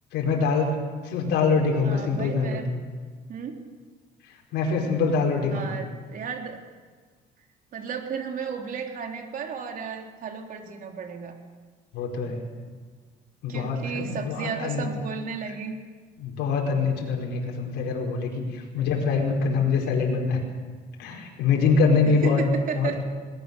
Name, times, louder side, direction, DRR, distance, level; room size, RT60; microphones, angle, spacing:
voice 1, 0.1-0.7 1.0-2.7 4.5-5.8 11.9-12.4 13.4-14.9 16.2-20.4 21.0-22.4 22.8-23.0, left 4 dB, 85° left, 0 dB, 4.6 m, -24 dB
voice 2, 1.8-2.7 3.3-3.6 5.4-6.6 7.7-11.4 13.5-15.7 18.8-18.9 22.0-23.0, right 6 dB, 55° right, 3 dB, 3.6 m, -34 dB
21.5 x 19.0 x 6.9 m, 1.5 s
cardioid pair, 110°, 17 cm